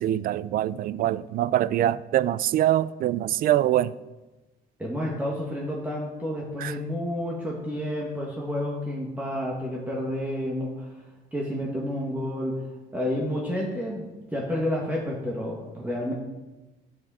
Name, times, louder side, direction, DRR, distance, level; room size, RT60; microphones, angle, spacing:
voice 1, 0.0-4.0 6.6-6.8, right 13 dB, 60° right, 0.4 m, -24 dB
voice 2, 4.8-11.0 11.3-12.6 12.9-14.1 14.3-16.1, left 1 dB, 10° right, 1.8 m, -30 dB
11.5 x 6.4 x 4.9 m
cardioid pair, 110°, 17 cm